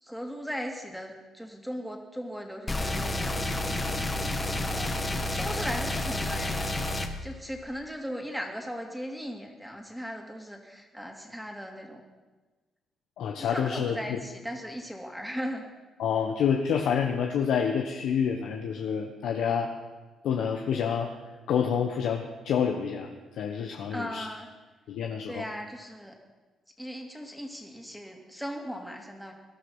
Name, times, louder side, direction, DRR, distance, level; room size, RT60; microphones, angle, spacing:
voice 1, 0.0-3.8 4.5-6.8 7.2-12.0 13.4-15.6 23.9-24.5 25.3-26.2 26.8-29.3, equal, ahead, 2 dB, 2.7 m, -38 dB
sound 1, 2.7-7.1, left 1 dB, 20° left, 1.7 m, -30 dB
voice 2, 13.2-14.2 16.0-19.7 20.2-21.1 21.5-24.3 24.9-25.4, left 7 dB, 80° left, 3 dB, 1.2 m, -28 dB
19.0 x 12.0 x 5.6 m, 1.3 s
cardioid pair, 90°, 0 cm